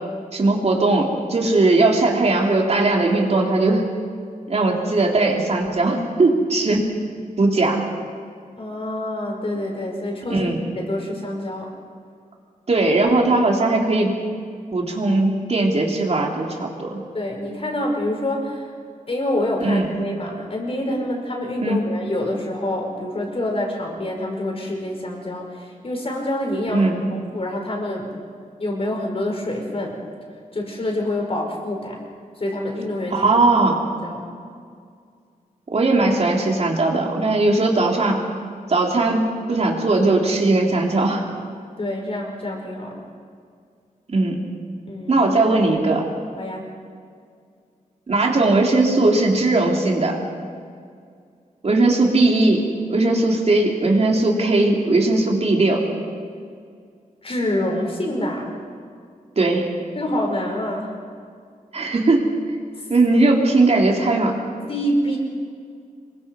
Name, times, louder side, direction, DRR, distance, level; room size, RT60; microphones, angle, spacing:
voice 1, 0.3-3.8 4.5-6.9 7.4-7.8 10.3-10.6 12.7-14.2 14.7-17.0 19.6-19.8 21.6-21.9 26.7-27.0 33.1-33.8 35.7-38.2 38.7-41.2 44.1-44.4 45.1-46.0 48.1-50.2 51.6-52.6 52.9-55.8 59.4-59.7 61.7-62.3 62.9-64.3, right 2 dB, 50° right, 0 dB, 3.8 m, -19 dB
voice 2, 8.6-10.5 10.8-11.7 17.1-18.7 19.1-28.1 28.6-30.0 30.5-32.0 32.4-33.3 34.0-34.3 41.8-43.0 44.9-45.2 46.4-46.7 57.2-58.5 60.0-60.9 64.4-65.2, left 1 dB, 45° left, 0 dB, 5.6 m, -26 dB
27.0 x 23.0 x 5.5 m, 2.2 s
wide cardioid pair, 125°, 14 cm